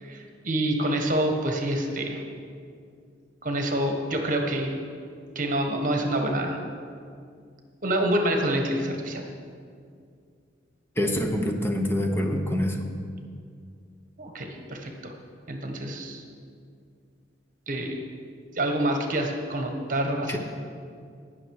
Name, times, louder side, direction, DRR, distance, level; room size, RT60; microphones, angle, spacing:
voice 1, 0.0-2.2 3.4-4.7 5.3-6.6 7.8-9.2 14.2-15.1 15.5-16.2 17.7-18.0 18.5-20.4, right 1 dB, 45° right, 3 dB, 1.3 m, -27 dB
voice 2, 11.0-12.9 20.3-20.4, left 1 dB, 15° left, 3 dB, 0.9 m, -26 dB
18.5 x 6.3 x 4.8 m, 2.2 s
head